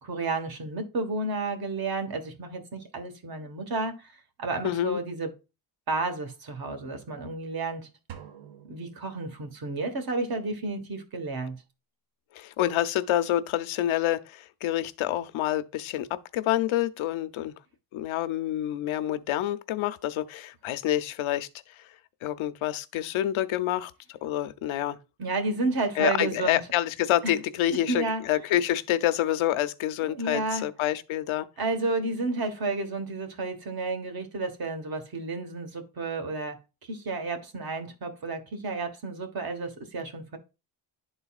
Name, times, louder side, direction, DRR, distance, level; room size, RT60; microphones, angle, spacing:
voice 1, 0.0-4.1 4.4-5.3 5.9-7.9 8.7-11.6 25.2-26.6 27.2-27.3 27.9-28.2 30.1-30.7 31.6-36.6 36.9-40.4, right 3 dB, 50° right, 1.4 m, -31 dB
voice 2, 4.6-5.0 12.3-17.5 17.9-21.9 22.2-25.0 26.0-31.5, left 13 dB, 90° left, 0.7 m, -27 dB
sound 1, 8.1-9.9, right 9 dB, 80° right, 1.0 m, -48 dB
11.5 x 4.0 x 2.4 m
cardioid pair, 140°, 47 cm